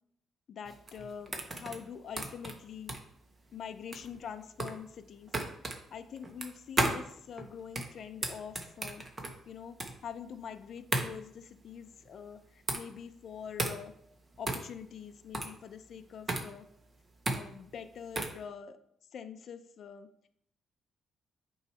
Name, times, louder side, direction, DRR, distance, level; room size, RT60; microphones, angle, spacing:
voice 1, 0.5-3.0 3.5-5.3 5.9-9.1 9.5-9.8 10.0-13.9 14.4-16.7 17.3-18.8 19.1-20.1, left 7 dB, 60° left, 9 dB, 0.5 m, -45 dB
sound 1, 0.7-18.4, right 2 dB, 30° right, 1.2 m, -36 dB
8.4 x 3.1 x 5.5 m, 0.70 s
cardioid pair, 90°, 0 cm